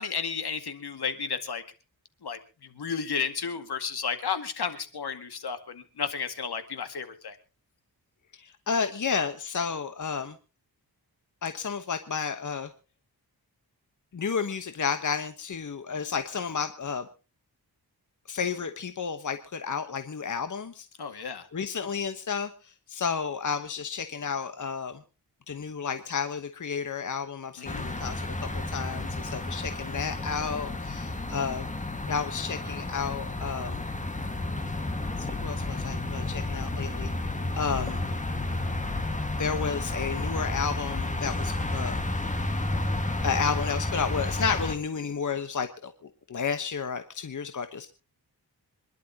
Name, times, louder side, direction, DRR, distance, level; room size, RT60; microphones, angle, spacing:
voice 1, 0.0-1.6 2.2-2.4 2.8-7.4 21.0-21.5 27.6-27.8, left 6 dB, 75° left, 8 dB, 2.1 m, -32 dB
voice 2, 8.4-10.3 11.4-12.7 14.1-17.1 18.3-20.9 21.5-22.5 22.9-25.0 25.5-31.6 32.1-33.8 35.2-37.1 37.6-38.0 39.4-42.0 43.2-45.9 46.3-47.9, left 6 dB, 50° left, 8 dB, 1.2 m, -31 dB
sound 1, 27.6-44.7, left 2 dB, 20° left, 1.8 m, -31 dB
26.5 x 11.5 x 2.9 m, 0.34 s
wide cardioid pair, 110°, 39 cm